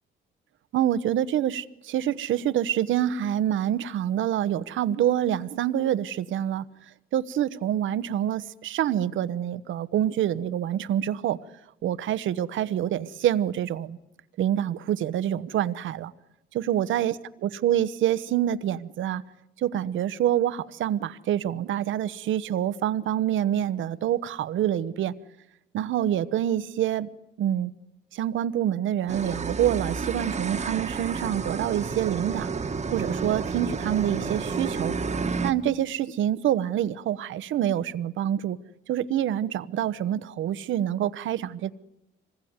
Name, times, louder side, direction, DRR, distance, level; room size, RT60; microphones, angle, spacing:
voice 1, 0.7-6.7 7.1-11.4 11.8-14.0 14.4-16.1 16.5-19.2 19.6-25.1 25.7-27.1 27.4-27.7 28.1-32.5 32.9-34.9 35.4-38.6 38.9-41.7, right 11 dB, 75° right, 15 dB, 1.0 m, -26 dB
sound 1, 29.1-35.5, right 4 dB, 35° right, 1.5 m, -30 dB
25.5 x 20.5 x 9.6 m, 0.90 s
cardioid pair, 90°, 20 cm